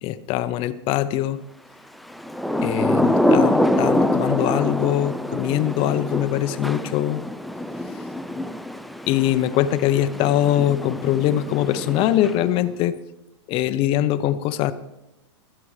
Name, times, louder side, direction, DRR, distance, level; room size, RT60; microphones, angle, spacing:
voice 1, 0.0-1.4 2.6-7.3 9.1-13.0 13.5-14.7, left 12 dB, 40° left, 12 dB, 0.8 m, -22 dB
Thunder / Rain, 2.1-12.7, left 1 dB, ahead, 0.4 m, -25 dB
25.0 x 8.7 x 3.3 m, 0.94 s
hypercardioid pair, 120°, 15 cm